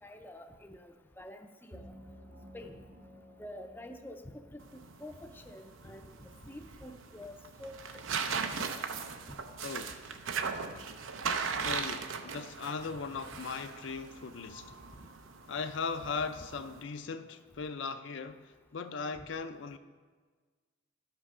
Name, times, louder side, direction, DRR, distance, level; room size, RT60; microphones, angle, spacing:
voice 1, 0.0-1.9 2.5-2.9 3.4-4.2 4.5-7.3 7.6-8.0 11.6-11.7, left 1 dB, 10° left, 0.5 m, -48 dB
sound 1, 1.7-5.3, equal, 55° right, 1.6 m, -54 dB
sound 2, 4.6-16.8, right 5 dB, 80° right, 0.7 m, -38 dB
voice 2, 9.6-10.1 10.8-11.0 11.6-14.7 15.5-19.8, left 5 dB, 65° left, 0.5 m, -38 dB
12.0 x 6.1 x 5.5 m
head